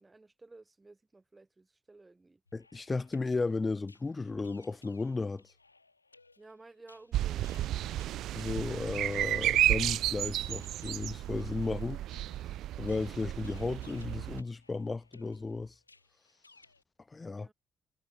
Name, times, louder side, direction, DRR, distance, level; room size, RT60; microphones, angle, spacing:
voice 1, 0.0-2.4 6.4-7.8 17.1-17.5, right 3 dB, 20° right, 7.0 m, -55 dB
sound 1, 2.5-16.8, left 3 dB, 85° left, 1.8 m, -63 dB
voice 2, 2.5-5.4 8.3-12.0 12.8-15.7 17.1-17.5, left 3 dB, 25° left, 0.5 m, -34 dB
sound 2, 7.1-14.4, right 13 dB, 60° right, 0.4 m, -32 dB
figure-of-eight pair, 45°, 0 cm